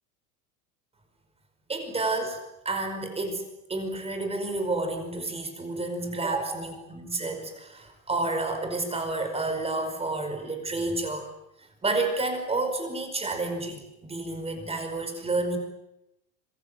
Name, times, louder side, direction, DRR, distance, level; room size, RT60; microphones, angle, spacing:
voice 1, 1.7-11.3 11.6-15.6, right 2 dB, 15° right, 7 dB, 5.3 m, -30 dB
26.0 x 22.5 x 9.0 m, 0.88 s
supercardioid pair, 145°, 42 cm